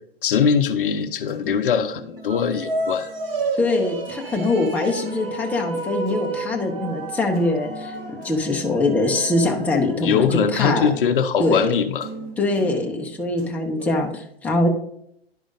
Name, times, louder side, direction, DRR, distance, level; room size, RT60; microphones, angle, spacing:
voice 1, 0.2-3.1 10.0-12.1, left 7 dB, 60° left, 10 dB, 0.6 m, -21 dB
sound 1, 0.8-3.5 3.8-14.0, right 3 dB, 40° right, 1.7 m, -41 dB
sound 2, 2.2-10.7, right 2 dB, 65° right, 1.1 m, -31 dB
voice 2, 3.6-7.9 8.2-10.9 11.4-11.7 12.4-14.7, left 2 dB, 5° left, 1 dB, 0.6 m, -23 dB
11.0 x 4.9 x 2.5 m, 0.73 s
figure-of-eight pair, 110°, 31 cm